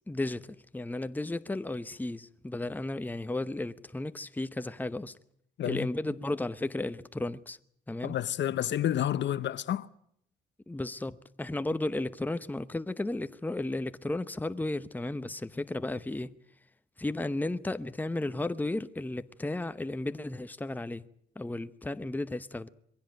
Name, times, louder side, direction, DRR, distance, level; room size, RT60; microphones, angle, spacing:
voice 1, 0.1-5.2 5.6-7.6 7.9-8.1 10.7-16.3 17.0-21.0 21.4-22.7, left 2 dB, 10° left, 0.9 m, -34 dB
voice 2, 8.0-9.9, left 11 dB, 65° left, 0.9 m, -30 dB
22.5 x 16.0 x 9.0 m
cardioid pair, 90°, 20 cm